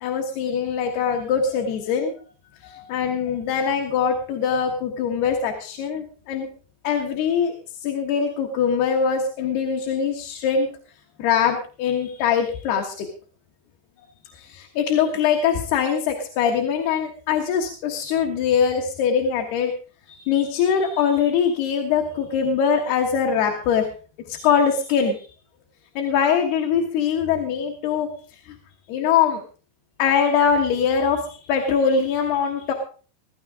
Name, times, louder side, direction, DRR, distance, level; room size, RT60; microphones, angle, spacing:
voice 1, 0.0-2.1 2.6-6.5 6.8-7.5 7.8-10.7 11.2-13.1 14.3-19.7 20.1-23.9 24.3-25.2 26.0-28.1 28.5-28.6 28.9-29.4 30.0-32.7, left 7 dB, 80° left, 2 dB, 3.6 m, -22 dB
16.0 x 15.0 x 3.7 m, 0.39 s
omnidirectional pair, 4.5 m